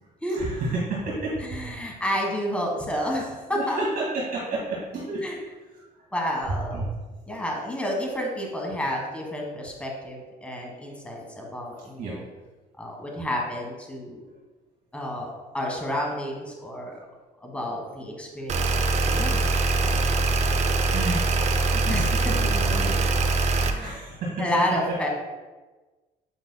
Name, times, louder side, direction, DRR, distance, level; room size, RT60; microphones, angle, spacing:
voice 1, 0.3-1.8 2.1-2.3 3.5-6.1 6.5-6.9 12.0-12.2 19.8-20.1 20.9-21.4 21.7-23.5 23.8-25.0, right 2 dB, 60° right, -5 dB, 1.9 m, -32 dB
voice 2, 1.5-3.8 5.2-5.3 6.1-6.8 7.3-12.2 12.8-14.2 14.9-17.0 17.4-19.4 21.9-22.3 23.6-24.0 24.4-25.1, equal, 5° left, 0 dB, 1.5 m, -30 dB
sound 1, 18.5-23.7, right 3 dB, 40° right, 0.6 m, -23 dB
8.1 x 5.5 x 2.3 m, 1.2 s
cardioid pair, 110°, 17 cm